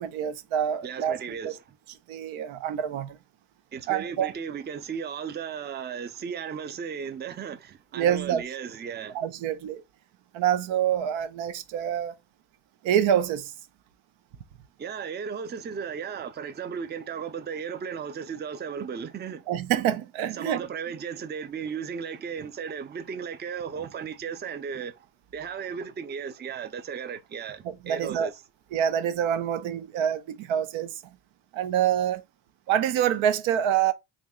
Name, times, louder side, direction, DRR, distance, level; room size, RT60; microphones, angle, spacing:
voice 1, 0.0-1.2 1.4-1.5 2.1-3.2 3.9-4.3 7.9-8.4 9.1-9.8 10.3-12.1 12.8-13.5 19.5-20.6 27.6-28.3 28.7-30.9 31.5-32.2 32.7-33.9, right 9 dB, 80° right, 0.7 m, -26 dB
voice 2, 0.8-1.6 3.7-9.2 14.8-19.4 20.3-25.1 25.3-28.3, right 7 dB, 25° right, 0.5 m, -35 dB
3.1 x 2.6 x 3.6 m
cardioid pair, 80°, 46 cm